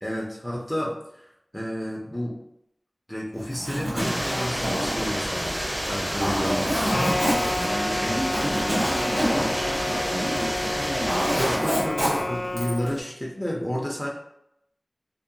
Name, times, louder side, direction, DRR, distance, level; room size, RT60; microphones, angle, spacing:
voice 1, 0.0-1.2 1.5-2.4 3.1-5.6 5.9-6.7 8.0-8.2 11.4-14.1, equal, 15° left, -3 dB, 0.5 m, -31 dB
Zipper (clothing), 3.4-10.5 10.8-12.9, equal, 85° right, 0.9 m, -28 dB
sound 1, 4.0-11.6, equal, 20° right, 0.7 m, -29 dB
voice 2, 6.4-6.9 7.6-11.8 12.0-12.2, right 1 dB, 60° right, -6 dB, 0.7 m, -33 dB
sound 2, 6.9-12.9, left 2 dB, 85° left, 0.4 m, -30 dB
2.8 x 2.0 x 2.6 m, 0.79 s
wide cardioid pair, 50°, 0 cm